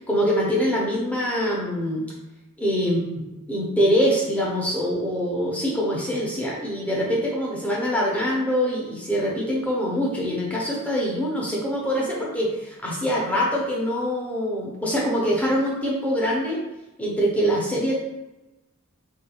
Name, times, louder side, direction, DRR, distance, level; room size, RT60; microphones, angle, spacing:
voice 1, 0.0-2.0 2.6-3.0 3.5-16.6 17.0-18.0, equal, 5° left, -4 dB, 0.6 m, -24 dB
3.6 x 2.3 x 2.9 m, 1.0 s
head